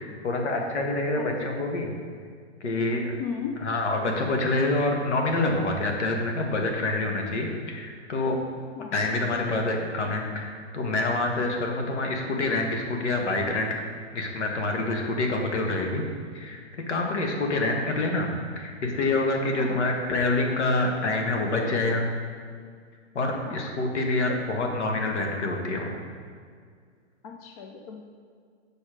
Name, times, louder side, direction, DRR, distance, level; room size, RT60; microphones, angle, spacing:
voice 1, 0.0-2.0 2.6-3.1 3.6-8.4 8.9-13.7 14.1-16.0 16.3-16.6 16.9-22.1 23.1-26.0, left 2 dB, 75° left, 2 dB, 1.6 m, -26 dB
voice 2, 3.2-3.5 8.8-8.9 19.5-19.8 23.4-23.6 27.2-28.0, left 7 dB, 35° left, 3 dB, 0.5 m, -35 dB
7.1 x 5.2 x 5.1 m, 2.1 s
hypercardioid pair, 155°, 35 cm